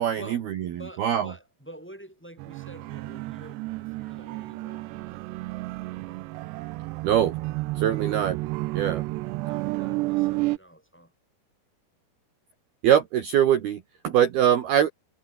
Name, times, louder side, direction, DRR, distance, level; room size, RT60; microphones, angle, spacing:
voice 1, 0.0-1.3 7.0-7.3 7.8-8.4 8.7-9.0 12.8-14.9, right 10 dB, 60° right, 3.3 m, -23 dB
voice 2, 0.7-6.5 7.8-8.0 8.7-9.0 9.4-11.1, right 1 dB, ahead, 6.2 m, -48 dB
sound 1, 2.4-10.6, right 21 dB, 90° right, 2.4 m, -31 dB
omnidirectional pair, 5.7 m